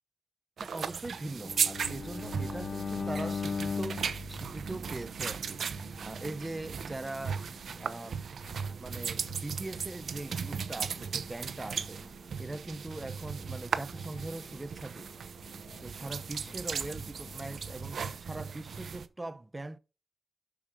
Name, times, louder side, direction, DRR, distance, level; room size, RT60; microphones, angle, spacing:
voice 1, 0.6-7.4 7.8-8.2 8.8-12.0 12.4-15.1 15.8-19.8, right 2 dB, 25° right, 0.7 m, -41 dB
sound 1, 0.6-19.1, right 6 dB, 90° right, 0.7 m, -37 dB
Bowed string instrument, 1.3-5.4, left 5 dB, 55° left, 0.4 m, -37 dB
sound 2, 2.2-18.2, left 4 dB, 80° left, 1.9 m, -55 dB
6.9 x 6.4 x 5.1 m
wide cardioid pair, 110°, 0 cm